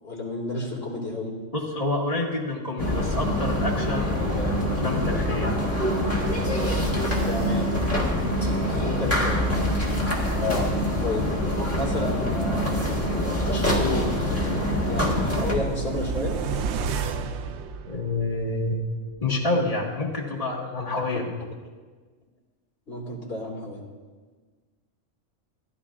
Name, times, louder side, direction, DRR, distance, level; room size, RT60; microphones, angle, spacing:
voice 1, 0.0-1.3 7.2-7.8 8.6-9.5 11.0-16.4 21.0-21.2 22.9-23.8, left 2 dB, 45° left, -3 dB, 2.3 m, -32 dB
voice 2, 1.5-5.6 10.4-10.7 17.9-18.8 19.2-21.2, left 2 dB, 25° left, -4 dB, 1.6 m, -28 dB
sound 1, 2.8-15.5, equal, 10° left, 1.5 m, -25 dB
sound 2, 13.8-18.5 18.8-18.9, right 5 dB, 65° right, 0.8 m, -32 dB
15.0 x 11.0 x 2.5 m, 1.4 s
omnidirectional pair, 1.4 m